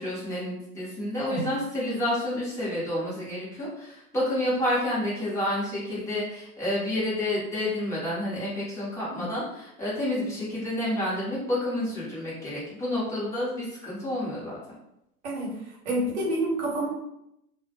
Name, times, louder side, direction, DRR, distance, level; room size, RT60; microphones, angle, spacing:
voice 1, 0.0-14.6, left 1 dB, 5° left, -8 dB, 0.6 m, -29 dB
voice 2, 15.8-16.9, right 1 dB, 45° right, -3 dB, 0.9 m, -28 dB
2.1 x 2.1 x 2.8 m, 0.82 s
hypercardioid pair, 115°, 47 cm